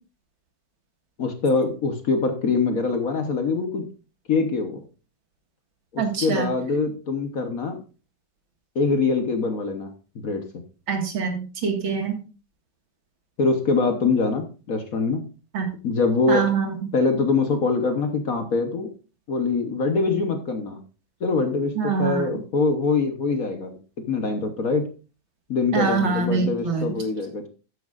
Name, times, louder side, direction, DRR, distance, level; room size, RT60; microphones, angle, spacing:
voice 1, 1.2-3.8 4.3-4.8 5.9-7.8 8.7-9.9 10.1-10.4 13.4-15.2 15.8-16.5 16.9-18.9 19.3-20.8 21.2-23.8 24.1-24.9 25.5-27.5, left 4 dB, 50° left, 6 dB, 1.3 m, -23 dB
voice 2, 6.0-6.5 10.9-12.2 15.5-15.7 16.3-16.8 21.8-22.2 25.7-26.9, right 5 dB, 70° right, 3 dB, 2.6 m, -24 dB
12.5 x 9.7 x 2.5 m, 0.33 s
omnidirectional pair, 2.2 m